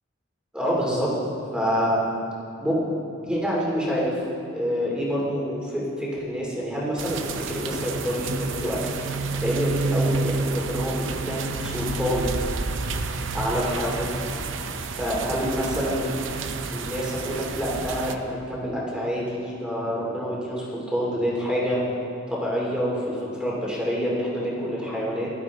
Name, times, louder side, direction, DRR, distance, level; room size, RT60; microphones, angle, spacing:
voice 1, 0.5-1.2 1.5-2.0 2.6-2.9 3.2-4.2 4.5-12.3 13.3-14.2 15.0-16.1 16.7-21.8 22.3-25.3, equal, 5° right, -5 dB, 2.8 m, -27 dB
sound 1, 7.0-18.2, right 3 dB, 70° right, 0.7 m, -29 dB
17.0 x 12.5 x 3.7 m, 2.8 s
head